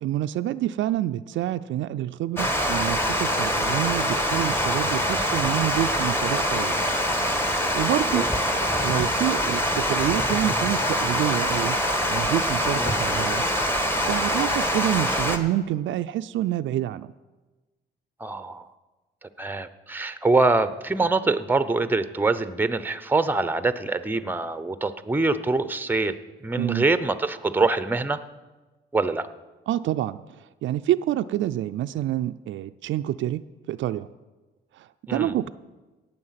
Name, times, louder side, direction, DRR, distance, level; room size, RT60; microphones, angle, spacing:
voice 1, 0.0-6.8 7.5-8.3 8.8-11.8 12.1-13.4 14.1-17.1 26.5-26.9 29.7-34.1 34.7-35.5, right 13 dB, 75° right, 11 dB, 0.4 m, -27 dB
Water, 2.4-15.4, equal, 10° left, 1.4 m, -24 dB
voice 2, 18.2-18.7 19.4-26.1 26.4-28.2 28.9-29.3 35.1-35.3, right 3 dB, 10° right, 12 dB, 0.7 m, -24 dB
17.5 x 7.1 x 5.8 m, 1.2 s
cardioid pair, 90°, 20 cm